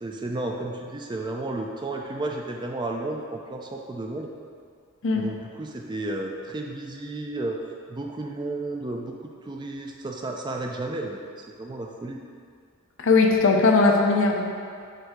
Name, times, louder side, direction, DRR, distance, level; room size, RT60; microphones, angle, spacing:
voice 1, 0.0-4.3 5.1-12.2, right 2 dB, 20° right, 1 dB, 0.4 m, -33 dB
voice 2, 13.0-14.5, left 3 dB, 60° left, 1 dB, 0.6 m, -19 dB
7.5 x 2.7 x 4.8 m, 2.2 s
head